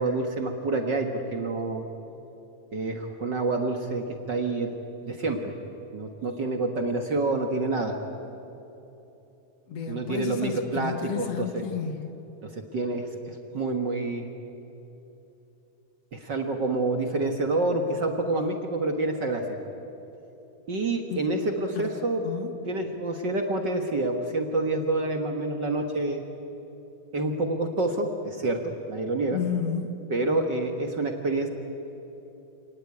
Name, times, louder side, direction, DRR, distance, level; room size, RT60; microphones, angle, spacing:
voice 1, 0.0-1.9 2.7-4.7 5.0-5.6 5.9-8.0 9.9-11.6 12.4-14.3 16.1-19.4 20.7-22.2 22.7-26.2 27.1-29.4 30.1-31.5, right 2 dB, 45° right, 4 dB, 1.7 m, -28 dB
voice 2, 9.7-12.1 21.1-21.3 21.8-21.9 22.2-22.5 29.3-30.0, left 7 dB, 60° left, 7 dB, 2.4 m, -31 dB
28.0 x 19.0 x 9.7 m, 3.0 s
omnidirectional pair, 3.4 m